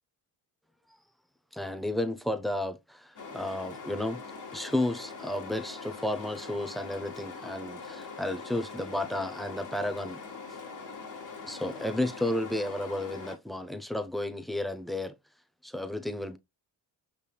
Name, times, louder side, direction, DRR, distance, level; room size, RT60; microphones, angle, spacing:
voice 1, 1.5-4.2 4.5-10.2 11.4-15.1 15.6-16.4, left 1 dB, ahead, 0.6 m, -32 dB
sound 1, 3.2-13.4, left 4 dB, 40° left, 1.7 m, -43 dB
5.3 x 3.4 x 2.3 m
supercardioid pair, 65°, 45 cm